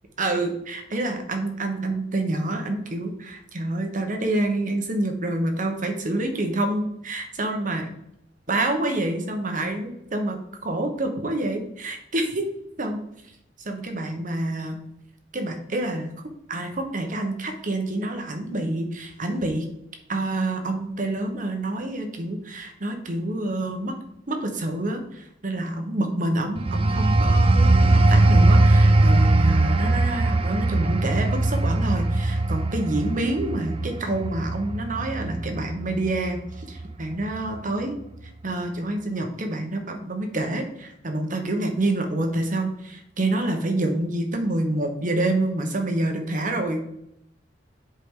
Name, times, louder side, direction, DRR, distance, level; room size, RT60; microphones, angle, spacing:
voice 1, 0.2-7.9 8.5-12.4 12.8-13.0 13.6-14.8 15.3-16.1 16.5-19.7 20.1-23.9 24.3-38.0 38.4-46.8, right 2 dB, 45° right, 4 dB, 1.2 m, -27 dB
sound 1, 26.6-36.9 37.3-37.6, right 2 dB, 30° right, 0.4 m, -20 dB
8.7 x 4.9 x 3.8 m, 0.78 s
head